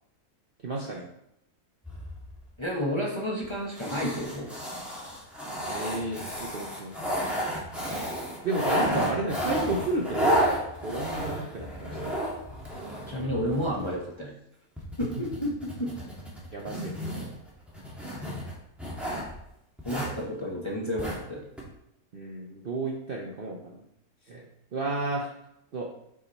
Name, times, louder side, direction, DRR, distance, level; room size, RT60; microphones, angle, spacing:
voice 1, 0.6-1.1 5.7-7.2 8.4-10.5 10.8-12.2 15.0-15.1 16.5-17.1 22.1-23.8 24.3-24.5 24.7-25.3 25.7-25.9, right 2 dB, 45° right, -1 dB, 0.7 m, -32 dB
sound 1, 1.8-2.5 3.4-3.5 3.8-14.0 14.8-19.3 19.8-20.2 21.0-21.2 21.6-21.7, equal, ahead, 1.5 m, -32 dB
voice 2, 2.6-4.5 13.1-14.3 15.0-15.9 19.8-21.4, equal, 20° left, -4 dB, 1.0 m, -31 dB
5.9 x 4.8 x 4.1 m, 0.81 s
omnidirectional pair, 1.7 m